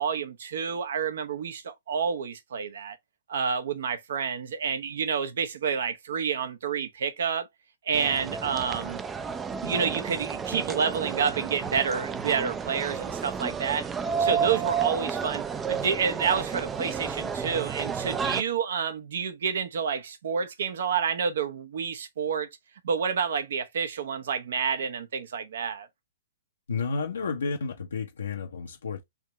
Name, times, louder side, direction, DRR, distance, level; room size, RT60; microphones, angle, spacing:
voice 1, 0.0-3.0 3.3-7.5 7.8-9.0 9.6-13.9 14.2-22.5 22.8-25.9, right 6 dB, 65° right, 0.8 m, -29 dB
sound 1, 7.9-18.4, right 6 dB, 15° right, 0.3 m, -31 dB
voice 2, 26.7-29.0, left 4 dB, 75° left, 0.6 m, -31 dB
3.4 x 2.9 x 3.1 m
hypercardioid pair, 120°, 0 cm